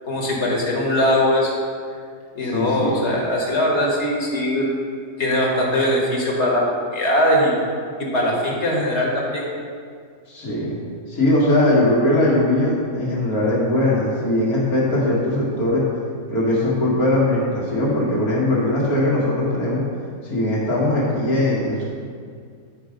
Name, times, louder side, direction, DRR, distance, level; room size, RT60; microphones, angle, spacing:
voice 1, 0.1-1.5 2.3-4.7 5.2-7.5 8.0-9.4, left 1 dB, 50° left, -2 dB, 1.7 m, -20 dB
voice 2, 2.4-3.0 10.3-10.8 11.1-15.8 16.3-19.8 20.2-21.9, left 1 dB, 80° left, -7 dB, 2.4 m, -20 dB
9.7 x 4.8 x 5.1 m, 2.1 s
omnidirectional pair, 1.5 m